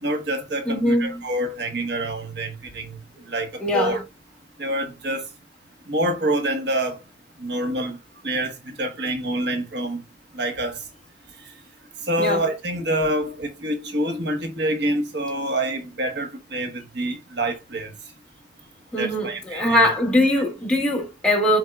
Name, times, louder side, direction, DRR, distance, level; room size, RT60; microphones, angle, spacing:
voice 1, 0.0-3.0 3.3-4.0 4.6-5.3 5.9-7.0 7.4-8.0 8.2-10.0 10.3-10.8 12.1-17.9 19.0-19.9, right 1 dB, 65° right, 1.3 m, -26 dB
voice 2, 0.7-1.1 3.6-4.0 12.2-12.4 18.9-21.6, left 1 dB, 5° left, 2.3 m, -21 dB
12.5 x 4.6 x 2.3 m
head